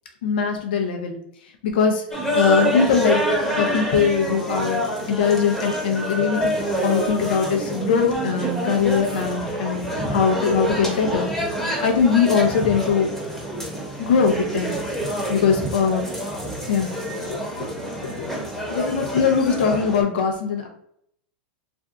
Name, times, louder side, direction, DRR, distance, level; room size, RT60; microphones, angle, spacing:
voice 1, 0.2-1.2 1.6-2.0 2.3-3.2 3.6-4.8 5.1-11.3 11.8-13.1 14.0-14.8 15.3-16.1 16.7-16.9 17.3-17.4 18.2-18.3 18.7-20.7, left 6 dB, 75° left, 2 dB, 0.7 m, -21 dB
sound 1, 2.1-20.0, equal, 5° left, 1.0 m, -27 dB
2.6 x 2.2 x 3.7 m, 0.70 s
hypercardioid pair, 110°, 5 cm